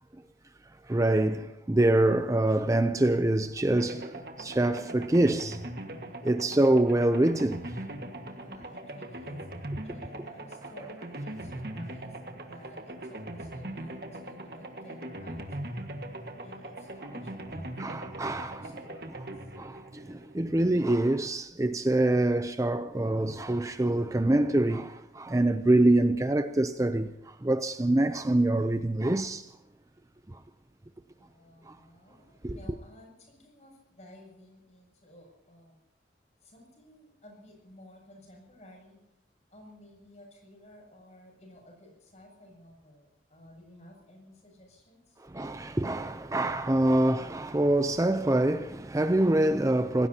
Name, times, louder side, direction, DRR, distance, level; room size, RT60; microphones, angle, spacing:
voice 1, 0.8-5.6 6.2-7.8 17.8-18.7 19.6-29.5 30.3-30.4 31.7-31.8 32.4-32.6 45.2-50.1, right 1 dB, 20° right, 0.5 m, -25 dB
sound 1, 3.8-20.7, right 1 dB, 55° right, 1.7 m, -40 dB
voice 2, 5.9-6.3 8.4-15.9 16.4-18.1 18.6-19.5 31.2-35.8 36.4-39.0 39.5-45.2, left 1 dB, 40° left, 7.2 m, -54 dB
26.5 x 18.5 x 2.9 m
head